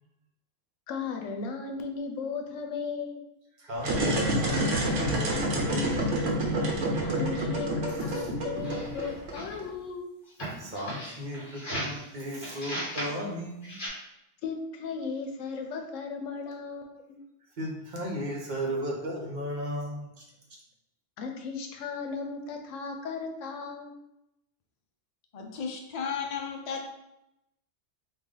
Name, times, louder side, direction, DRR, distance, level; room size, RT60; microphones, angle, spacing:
voice 1, 0.9-3.2 7.0-10.1 14.4-17.2 21.2-23.9, left 5 dB, 85° left, 4 dB, 1.0 m, -36 dB
voice 2, 3.6-6.3 7.9-8.3 10.6-13.8 17.6-20.2, equal, 45° right, -1 dB, 0.7 m, -35 dB
sound 1, 3.8-9.6, right 1 dB, 80° right, 1.0 m, -28 dB
sound 2, 8.5-9.6 10.3-12.0 12.4-13.1 13.6-13.9, equal, 45° left, 1.3 m, -37 dB
voice 3, 25.3-26.8, left 6 dB, 60° left, 2 dB, 0.4 m, -34 dB
3.3 x 2.4 x 3.7 m, 0.86 s
omnidirectional pair, 1.3 m